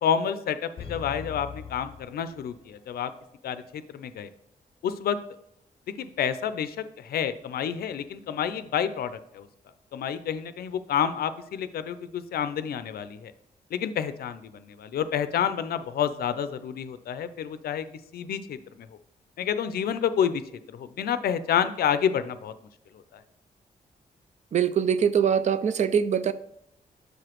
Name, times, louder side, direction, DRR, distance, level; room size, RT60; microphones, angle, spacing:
voice 1, 0.0-3.1 3.4-4.3 4.8-5.2 6.0-9.5 9.9-13.3 13.7-17.9 18.1-18.9 19.4-20.4 20.7-22.5 23.1-23.2, left 8 dB, 85° left, 12 dB, 0.5 m, -29 dB
sound 1, 0.8-3.0 3.3-3.4, left 7 dB, 35° left, 0.6 m, -41 dB
voice 2, 24.5-26.3, right 8 dB, 50° right, 13 dB, 0.4 m, -23 dB
6.4 x 4.9 x 3.0 m, 0.77 s
wide cardioid pair, 140°, 16 cm